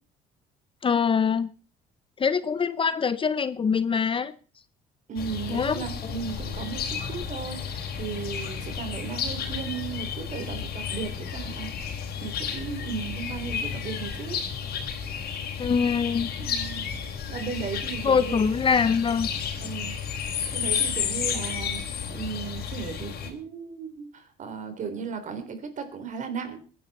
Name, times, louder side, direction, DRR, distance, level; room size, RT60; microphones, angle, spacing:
voice 1, 0.8-1.5 2.2-4.3 5.5-5.8 15.6-16.3 18.0-19.3, left 6 dB, 30° left, 0.8 m, -24 dB
voice 2, 5.1-11.7 12.2-14.4 16.4-16.8 17.3-18.5 19.6-20.0 20.5-21.8 22.1-26.6, right 6 dB, 45° right, 3.6 m, -36 dB
sound 1, 5.2-23.3, left 7 dB, 65° left, 4.0 m, -32 dB
22.0 x 10.5 x 4.2 m
cardioid pair, 110°, 17 cm